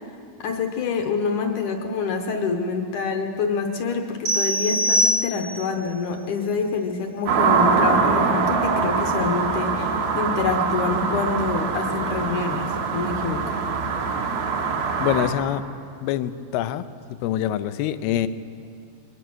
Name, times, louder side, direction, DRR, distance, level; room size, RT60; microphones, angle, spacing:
voice 1, 0.4-13.6, left 5 dB, 70° left, 4 dB, 2.1 m, -26 dB
sound 1, 4.3-5.8, equal, 65° right, 1.0 m, -22 dB
sound 2, 7.3-15.3, right 5 dB, 85° right, 3.6 m, -23 dB
voice 2, 15.0-15.6 16.0-16.9 17.2-18.3, left 12 dB, 85° left, 13 dB, 2.6 m, -25 dB
22.0 x 19.0 x 6.2 m, 2.3 s
omnidirectional pair, 4.4 m